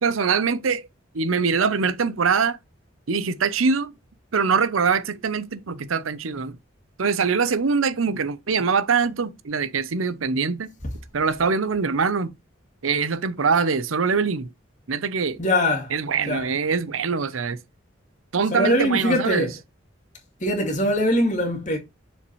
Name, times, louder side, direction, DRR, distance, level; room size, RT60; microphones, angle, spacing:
voice 1, 0.0-0.8 1.1-2.6 3.1-3.9 4.3-6.6 7.0-10.7 11.1-12.3 12.8-14.5 14.9-15.4 15.9-17.6 18.3-19.5, right 5 dB, 90° right, 0.7 m, -23 dB
voice 2, 15.4-15.9 16.3-16.5 18.5-19.5 20.4-21.8, left 1 dB, 40° left, 2.3 m, -22 dB
6.5 x 5.1 x 3.1 m
head